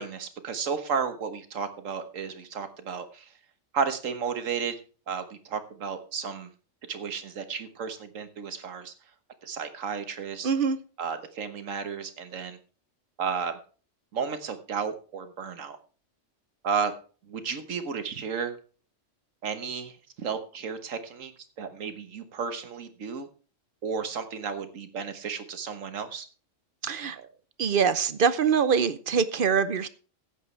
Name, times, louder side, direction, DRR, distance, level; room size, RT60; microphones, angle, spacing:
voice 1, 0.0-3.3 3.7-4.7 5.1-6.5 6.9-8.9 9.4-10.5 11.0-12.6 13.2-13.6 14.1-15.8 16.6-16.9 17.3-18.6 19.4-21.3 21.6-23.3 23.8-26.3, right 6 dB, 90° right, 1.6 m, -33 dB
voice 2, 10.4-10.8 26.8-27.2 27.6-29.9, right 6 dB, 50° right, 0.8 m, -24 dB
14.5 x 9.2 x 3.2 m
omnidirectional pair, 1.3 m